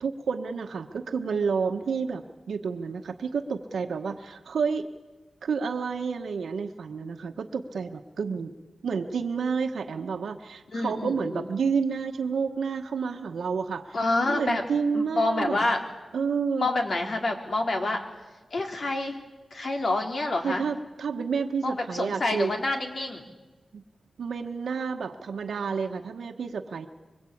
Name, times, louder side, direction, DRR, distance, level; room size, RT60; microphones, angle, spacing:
voice 1, 0.0-4.9 5.4-8.5 8.8-14.0 14.3-15.6 16.1-16.7 20.4-22.5 23.7-23.8 24.2-26.9, right 5 dB, 85° right, 5 dB, 1.2 m, -30 dB
voice 2, 10.7-11.5 13.9-14.6 14.9-15.8 16.6-18.0 18.5-19.2 19.5-20.6 21.6-23.2, left 2 dB, 60° left, 3 dB, 3.9 m, -27 dB
25.5 x 21.5 x 8.6 m, 1.2 s
cardioid pair, 65°, 0 cm